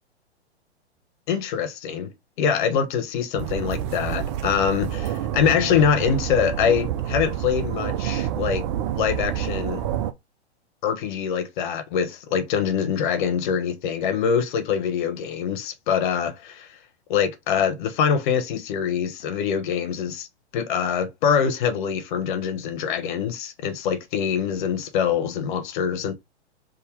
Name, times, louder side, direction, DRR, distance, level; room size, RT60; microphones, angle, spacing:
voice 1, 1.3-2.1 2.4-8.7 8.9-9.8 10.8-16.8 17.1-20.3 20.5-26.1, left 7 dB, 45° left, 1.1 m, -24 dB
sound 1, 3.4-10.1, right 11 dB, 30° right, 0.4 m, -28 dB
3.7 x 2.8 x 4.6 m
figure-of-eight pair, 110°, 34 cm